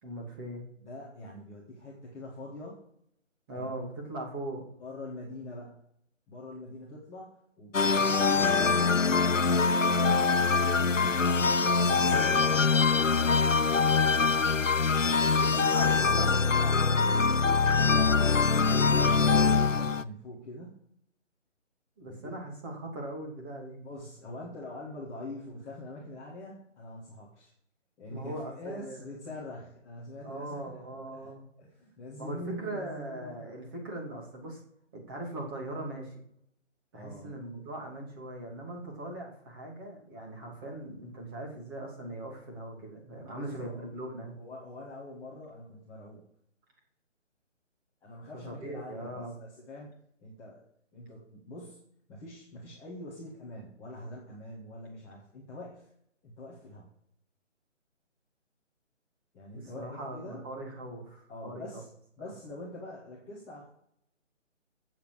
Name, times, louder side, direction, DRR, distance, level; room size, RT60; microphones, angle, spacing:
voice 1, 0.0-0.6 3.5-4.7 15.3-17.2 22.0-23.8 28.1-29.1 30.2-31.5 32.2-34.6 34.9-36.2 36.9-44.4 48.3-49.3 59.5-61.8 62.2-62.3, right 1 dB, 15° right, -1 dB, 2.8 m, -40 dB
voice 2, 0.8-2.8 3.5-3.7 4.8-5.8 6.3-9.5 17.1-20.8 22.1-22.4 23.8-27.5 28.0-31.3 31.6-33.4 36.9-37.3 43.3-43.8 44.4-46.2 48.0-49.9 50.2-50.6 50.9-51.8 52.1-55.8 56.2-56.9 59.3-60.4 61.3-61.9 62.2-63.7, left 1 dB, 5° left, -7 dB, 1.3 m, -44 dB
sound 1, 7.7-20.0, left 4 dB, 85° left, 0.8 m, -24 dB
15.5 x 7.6 x 4.9 m, 0.73 s
figure-of-eight pair, 150°, 37 cm